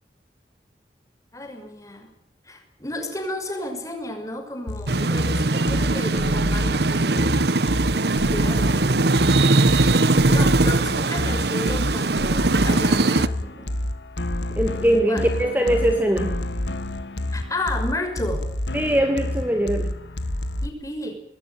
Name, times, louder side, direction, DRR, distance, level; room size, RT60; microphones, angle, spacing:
voice 1, 1.3-2.1 2.5-7.5 8.3-9.0 10.3-13.8 15.1-15.2 17.3-18.5 20.6-21.2, left 1 dB, 20° left, 5 dB, 6.0 m, -32 dB
sound 1, 4.7-20.7, left 1 dB, 85° left, 1.8 m, -29 dB
sound 2, 4.9-13.3, right 2 dB, 70° right, 1.0 m, -20 dB
voice 2, 14.6-16.3 18.7-19.9, right 1 dB, 10° right, 5 dB, 2.3 m, -21 dB
26.0 x 20.5 x 9.3 m, 0.65 s
head